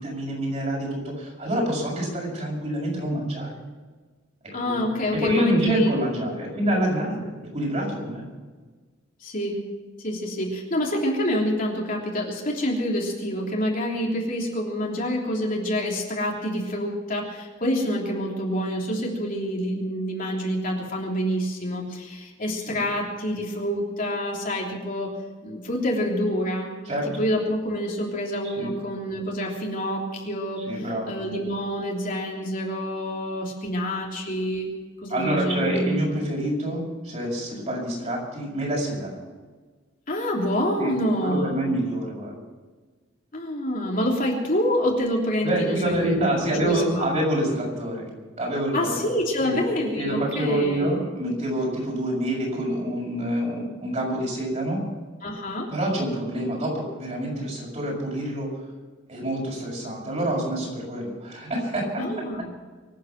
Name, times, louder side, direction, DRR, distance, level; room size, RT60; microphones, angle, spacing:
voice 1, 0.0-3.5 4.6-4.7 5.1-7.3 7.5-8.2 22.7-22.8 26.9-27.1 28.4-28.7 30.7-31.1 35.1-39.2 40.8-40.9 41.2-42.3 45.4-48.1 48.3-48.8 49.4-49.6 50.0-54.8 55.7-58.5 59.1-62.0, right 1 dB, 35° right, -2 dB, 7.0 m, -27 dB
voice 2, 4.5-5.9 6.2-6.3 6.6-6.9 9.2-9.7 10.0-25.1 25.4-26.8 27.2-30.6 31.1-34.7 35.0-36.0 40.1-41.7 43.3-46.2 46.5-47.2 48.7-51.0 55.2-55.7 62.0-62.5, equal, 45° left, -2 dB, 3.2 m, -27 dB
24.5 x 9.5 x 6.0 m, 1.4 s
head